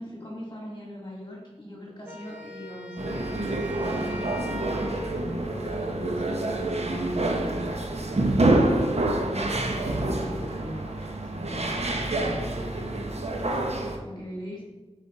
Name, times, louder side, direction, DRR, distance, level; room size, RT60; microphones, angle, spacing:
voice 1, 0.0-4.5 4.8-12.4 13.4-14.6, left 1 dB, 25° left, -3 dB, 1.8 m, -41 dB
Wind instrument woodwind instrument, 2.1-5.4, left 1 dB, 10° right, 1.0 m, -41 dB
sound 1, 3.0-14.0, right 2 dB, 65° right, 0.8 m, -27 dB
8.2 x 4.2 x 4.1 m, 1.2 s
wide cardioid pair, 65°, 12 cm